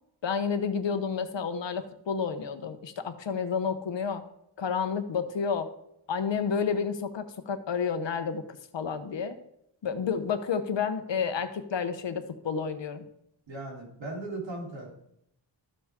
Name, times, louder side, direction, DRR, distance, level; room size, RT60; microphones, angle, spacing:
voice 1, 0.2-4.2 4.6-5.7 6.1-8.4 8.7-9.4 9.8-13.0, left 6 dB, 65° left, 9 dB, 1.0 m, -30 dB
voice 2, 13.5-14.9, right 2 dB, 70° right, -2 dB, 3.7 m, -37 dB
13.5 x 7.2 x 3.7 m, 0.77 s
wide cardioid pair, 125°, 46 cm